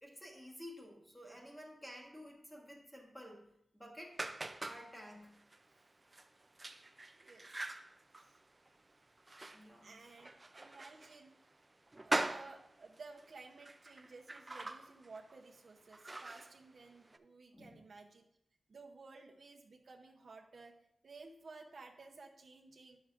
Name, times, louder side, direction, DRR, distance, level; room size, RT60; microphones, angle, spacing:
voice 1, 0.0-4.2 4.6-5.4 9.5-10.3 17.5-17.8, equal, 10° left, -1 dB, 1.3 m, -52 dB
sound 1, 4.1-17.2, right 2 dB, 25° right, 0.4 m, -43 dB
voice 2, 7.1-7.5 8.2-8.4 9.8-11.6 12.0-18.2 18.7-20.8 21.0-23.0, right 3 dB, 60° right, 1 dB, 0.7 m, -55 dB
10.5 x 6.2 x 2.5 m, 0.78 s
wide cardioid pair, 130°, 0 cm